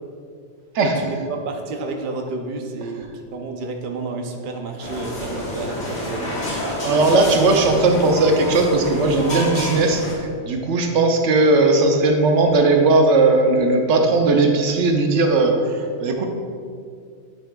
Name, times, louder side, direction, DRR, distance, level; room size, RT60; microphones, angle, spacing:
voice 1, 0.8-6.4, right 3 dB, 50° right, 3 dB, 0.8 m, -30 dB
sound 1, 4.8-10.1, left 1 dB, 90° left, 1.8 m, -28 dB
voice 2, 6.8-16.3, right 2 dB, 85° right, 3 dB, 1.0 m, -17 dB
9.5 x 5.7 x 2.3 m, 2.2 s
omnidirectional pair, 1.2 m